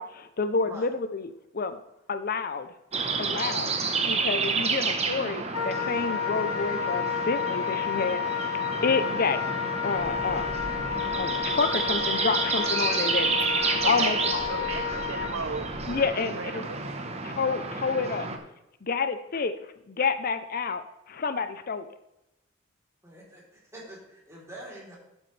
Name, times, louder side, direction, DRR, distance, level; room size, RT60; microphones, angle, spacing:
voice 1, 0.0-1.8 2.1-2.7 3.2-3.7 4.1-8.5 8.8-9.4 9.8-10.6 11.2-14.7 15.9-16.6 17.2-18.3 18.8-19.6 19.9-21.9, left 4 dB, 45° left, 11 dB, 0.5 m, -29 dB
sound 1, 2.9-18.4, right 4 dB, 30° right, 1.0 m, -30 dB
Wind instrument woodwind instrument, 5.5-15.4, left 8 dB, 90° left, 0.9 m, -31 dB
sound 2, 9.9-16.0, equal, 15° left, 3.5 m, -45 dB
voice 2, 13.6-17.3, right 4 dB, 75° right, 7 dB, 0.7 m, -38 dB
voice 3, 23.0-25.0, right 1 dB, 15° right, -4 dB, 3.4 m, -45 dB
12.5 x 8.0 x 3.3 m, 0.90 s
head